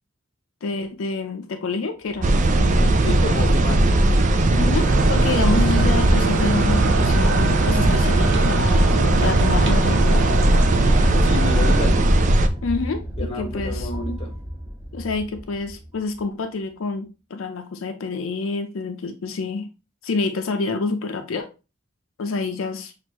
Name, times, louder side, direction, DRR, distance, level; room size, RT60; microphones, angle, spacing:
voice 1, 0.6-3.4 4.5-8.9 9.2-10.3 12.6-14.2 14.9-19.7 20.0-21.5 22.2-22.9, left 3 dB, 80° left, 6 dB, 0.5 m, -28 dB
sound 1, 2.0-16.2, equal, 10° right, 1.9 m, -30 dB
sound 2, 2.2-12.5, right 2 dB, 40° right, 0.4 m, -18 dB
voice 2, 3.0-4.1 11.1-12.1 13.2-14.3, left 2 dB, 30° left, 2 dB, 1.2 m, -30 dB
sound 3, 4.8-11.9, right 3 dB, 60° right, 1.0 m, -28 dB
6.1 x 2.5 x 3.0 m, 0.30 s
head